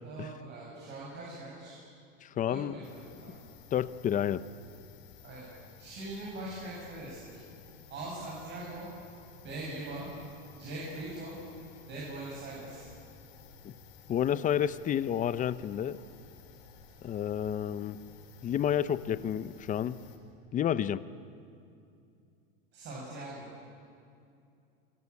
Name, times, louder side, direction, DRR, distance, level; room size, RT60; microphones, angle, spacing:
voice 1, 0.0-1.8 2.5-3.5 5.2-5.5 5.8-7.4 7.9-8.9 9.4-10.1 10.6-11.4 11.9-12.9 22.7-23.5, right 2 dB, 40° right, -5 dB, 7.7 m, -41 dB
voice 2, 2.2-2.7 3.7-4.4 13.6-13.7 14.1-16.0 17.0-18.0 18.4-20.0 20.5-21.0, left 9 dB, 25° left, 15 dB, 0.7 m, -30 dB
sound 1, 2.8-20.2, left 6 dB, 70° left, 5.1 m, -54 dB
28.5 x 23.5 x 8.5 m, 2.5 s
supercardioid pair, 130°, 29 cm